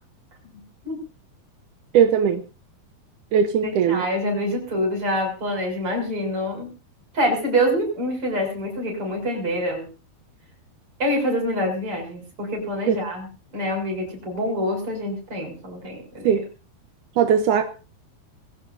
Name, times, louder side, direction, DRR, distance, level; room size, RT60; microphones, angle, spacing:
voice 1, 1.9-2.4 3.3-4.0 12.9-13.0 16.3-16.5 17.2-17.6, right 8 dB, 70° right, 6 dB, 2.1 m, -19 dB
voice 2, 3.6-6.7 7.1-9.9 11.0-13.3 13.5-16.4, equal, 30° right, 1 dB, 7.5 m, -26 dB
22.5 x 16.5 x 2.7 m, 0.34 s
omnidirectional pair, 4.6 m